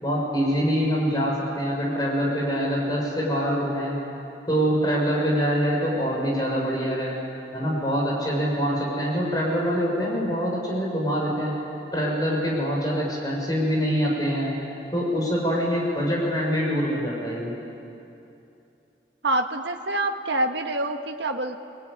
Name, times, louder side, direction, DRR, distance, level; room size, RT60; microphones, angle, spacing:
voice 1, 0.0-4.0 4.5-7.2 7.5-11.5 11.9-14.5 14.9-17.5, equal, 20° left, -3 dB, 6.0 m, -24 dB
voice 2, 19.2-21.6, right 2 dB, 80° right, 4 dB, 1.5 m, -26 dB
29.0 x 20.5 x 10.0 m, 2.8 s
head